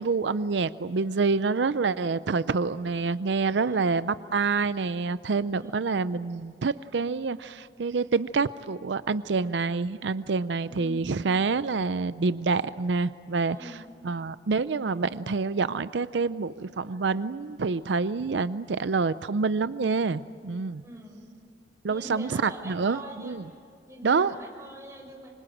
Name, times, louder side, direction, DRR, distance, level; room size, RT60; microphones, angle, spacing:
voice 1, 0.0-20.8 21.8-23.4 24.0-24.3, right 4 dB, 85° right, 14 dB, 0.5 m, -27 dB
voice 2, 3.6-4.0 5.6-5.9 10.7-11.1 13.5-13.9 20.8-21.2 21.8-23.4 23.9-25.3, right 1 dB, 15° right, 0 dB, 6.3 m, -43 dB
26.0 x 25.5 x 7.8 m, 2.4 s
head